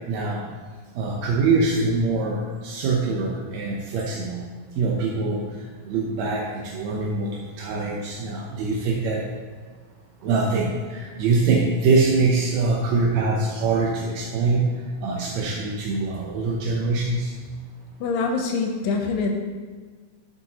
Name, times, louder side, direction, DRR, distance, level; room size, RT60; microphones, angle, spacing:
voice 1, 0.1-0.4 1.0-4.4 4.8-5.4 5.9-7.3 7.6-9.2 10.2-14.6 15.0-17.3, right 3 dB, 75° right, -2 dB, 1.7 m, -23 dB
voice 2, 18.0-19.3, left 4 dB, 80° left, 3 dB, 2.4 m, -24 dB
11.5 x 6.7 x 2.9 m, 1.5 s
omnidirectional pair, 4.0 m